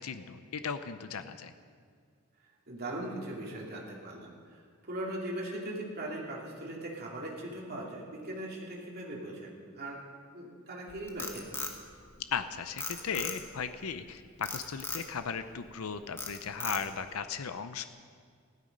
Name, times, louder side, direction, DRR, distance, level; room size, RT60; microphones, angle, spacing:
voice 1, 0.0-1.5 12.3-17.9, left 6 dB, 85° left, 10 dB, 0.6 m, -37 dB
voice 2, 2.7-10.0 10.3-11.6, right 1 dB, 45° right, -3 dB, 2.7 m, -40 dB
Frog, 10.9-12.4 12.8-13.7 14.4-15.1 15.6-15.8 16.2-17.1, left 3 dB, 10° left, 1.2 m, -38 dB
15.0 x 12.5 x 5.4 m, 2.1 s
head